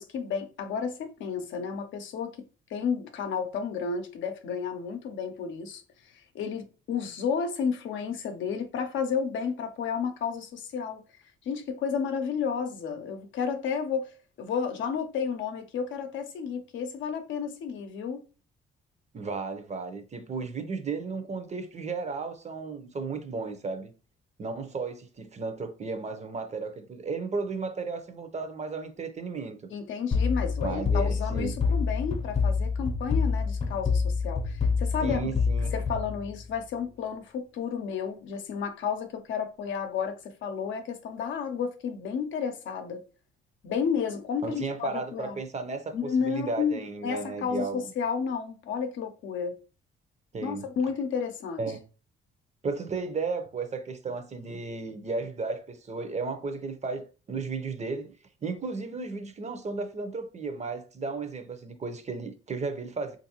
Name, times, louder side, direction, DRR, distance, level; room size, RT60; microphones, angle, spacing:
voice 1, 0.0-2.4 2.7-5.8 6.3-11.0 11.4-14.1 14.4-18.2 29.7-35.2 35.7-43.0 43.6-45.4 45.9-49.6 50.4-51.6, left 6 dB, 75° left, 0.6 m, -32 dB
voice 2, 19.1-23.9 24.4-29.7 30.6-31.6 35.0-35.7 44.4-47.8 50.3-50.7 51.6-51.8 52.6-58.1 58.4-63.2, right 4 dB, 35° right, 0.6 m, -34 dB
sound 1, 30.1-36.7, left 5 dB, 35° left, 0.7 m, -27 dB
3.4 x 2.6 x 2.9 m
cardioid pair, 90°, 20 cm